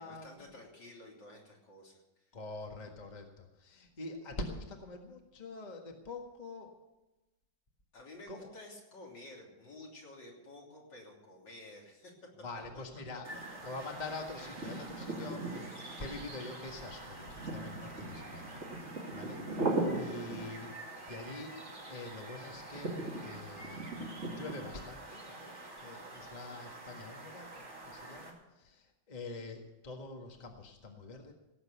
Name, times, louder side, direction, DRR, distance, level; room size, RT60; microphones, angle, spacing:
voice 1, 0.0-2.0 7.9-12.1 14.4-14.5 15.2-15.3, left 2 dB, 65° left, -2 dB, 3.9 m, -52 dB
voice 2, 2.3-6.7 8.3-8.6 12.4-13.3 13.6-15.7 16.0-19.6 19.9-20.8 21.1-21.6 21.9-23.0 23.2-23.9 24.3-25.5 25.8-31.3, left 2 dB, 25° left, 2 dB, 1.6 m, -45 dB
sound 1, 13.2-28.3, right 2 dB, 35° right, 2.8 m, -40 dB
17.5 x 8.1 x 8.1 m, 1.0 s
omnidirectional pair, 2.1 m